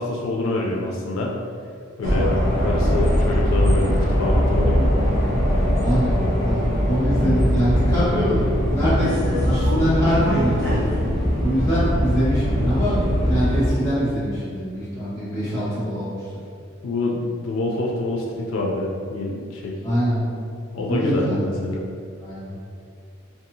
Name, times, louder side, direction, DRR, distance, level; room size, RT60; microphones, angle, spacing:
voice 1, 0.0-1.3 2.0-2.3 2.6-4.9 16.8-19.7 20.7-21.9, left 2 dB, 80° left, -1 dB, 0.3 m, -26 dB
sound 1, 2.0-13.7, equal, 65° right, 1.0 m, -21 dB
voice 2, 5.8-6.1 6.4-6.6 6.9-8.4 8.7-11.0 11.4-16.2 19.8-20.2 20.9-21.4 22.2-22.5, equal, 15° left, -10 dB, 1.1 m, -23 dB
2.7 x 2.3 x 2.6 m, 2.3 s
head